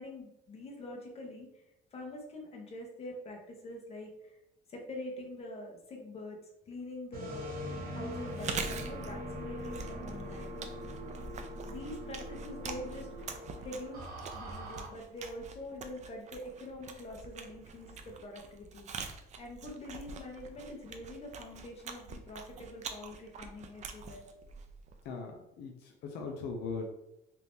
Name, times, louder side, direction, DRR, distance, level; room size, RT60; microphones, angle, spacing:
voice 1, 0.0-1.6 1.9-4.4 4.7-6.4 6.7-10.6 11.7-18.9 19.4-24.3, left 1 dB, 35° left, 1 dB, 0.9 m, -45 dB
sound 1, 7.1-14.9, equal, 60° right, 1.0 m, -41 dB
Chewing mastication, 8.2-25.1, right 5 dB, 45° right, 0.5 m, -45 dB
voice 2, 25.0-26.9, left 4 dB, 80° left, 2 dB, 0.6 m, -39 dB
2.9 x 2.6 x 3.4 m, 0.88 s
cardioid pair, 110°, 17 cm